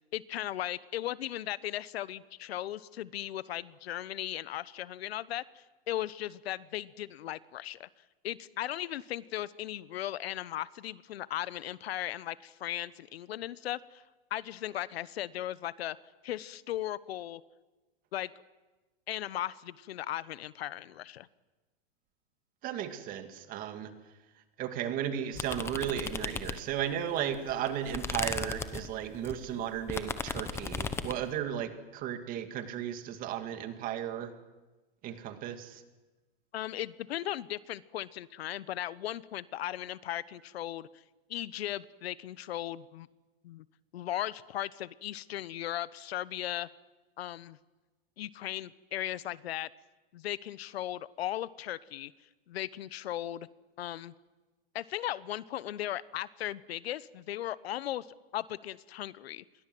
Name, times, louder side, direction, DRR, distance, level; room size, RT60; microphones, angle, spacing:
voice 1, 0.1-7.9 8.2-14.0 14.3-16.0 16.2-17.4 18.1-18.3 19.1-21.3 36.5-40.9 41.3-43.1 43.4-43.6 43.9-46.7 47.2-47.6 48.2-49.7 50.1-52.1 52.5-53.5 53.8-54.1 54.7-58.1 58.3-59.4, left 13 dB, 75° left, 19 dB, 1.0 m, -37 dB
voice 2, 22.6-23.9 24.6-34.3 35.0-35.8, right 10 dB, 25° right, 9 dB, 2.1 m, -35 dB
sound 1, 25.4-26.9 27.3-31.2, left 5 dB, 10° left, 0.9 m, -36 dB
28.0 x 22.5 x 7.8 m, 1.1 s
supercardioid pair, 160°, 31 cm